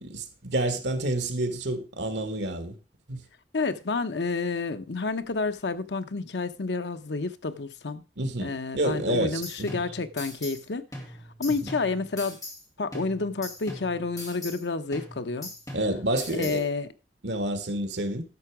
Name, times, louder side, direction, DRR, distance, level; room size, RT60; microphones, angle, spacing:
voice 1, 0.0-2.8 3.1-3.2 8.2-9.8 15.7-16.6 17.2-18.2, right 1 dB, 75° right, 1.7 m, -29 dB
voice 2, 3.5-8.0 8.4-10.9 11.4-12.4 12.8-15.5 16.3-16.9, left 3 dB, 75° left, 0.8 m, -29 dB
sound 1, 9.0-10.6 10.9-12.6 12.9-14.6 14.9-16.6, left 1 dB, 20° left, 2.8 m, -41 dB
10.5 x 6.9 x 4.8 m
head